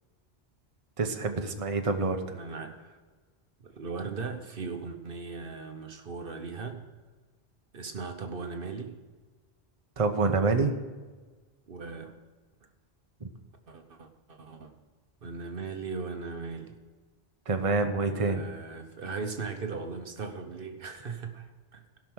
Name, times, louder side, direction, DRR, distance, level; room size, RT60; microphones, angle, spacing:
voice 1, 1.0-2.2 10.0-10.7 13.2-13.3 17.5-18.4, right 3 dB, 35° right, 5 dB, 1.0 m, -26 dB
voice 2, 2.3-3.0 3.6-6.8 7.7-9.0 11.7-12.1 13.7-14.7 15.2-16.8 17.9-21.8, right 4 dB, 60° right, 6 dB, 1.1 m, -38 dB
16.5 x 5.9 x 6.3 m, 1.4 s
omnidirectional pair, 1.0 m